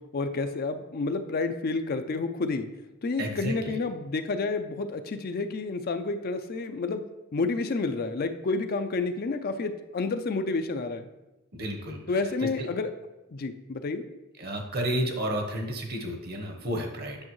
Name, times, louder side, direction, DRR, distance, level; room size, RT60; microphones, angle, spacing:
voice 1, 0.1-2.7 3.0-7.0 7.3-11.1 12.1-12.9 13.3-14.0, left 3 dB, 45° left, 8 dB, 0.4 m, -30 dB
voice 2, 3.2-3.8 11.5-12.0 12.4-12.7 14.4-17.2, right 1 dB, 45° right, 3 dB, 1.0 m, -31 dB
8.5 x 6.1 x 3.1 m, 1.0 s
head